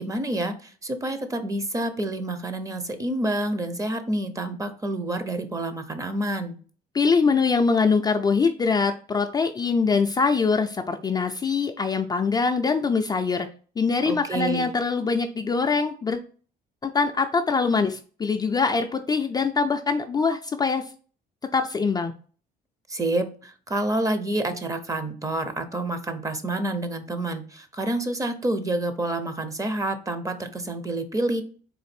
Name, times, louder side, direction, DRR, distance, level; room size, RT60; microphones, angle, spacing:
voice 1, 0.0-6.6 14.1-14.7 22.9-31.4, right 1 dB, 20° right, 9 dB, 0.7 m, -28 dB
voice 2, 6.9-13.5 13.8-16.2 16.8-20.9 21.5-22.1, left 4 dB, 25° left, 5 dB, 0.4 m, -23 dB
4.0 x 2.5 x 4.2 m, 0.40 s
cardioid pair, 110°, 17 cm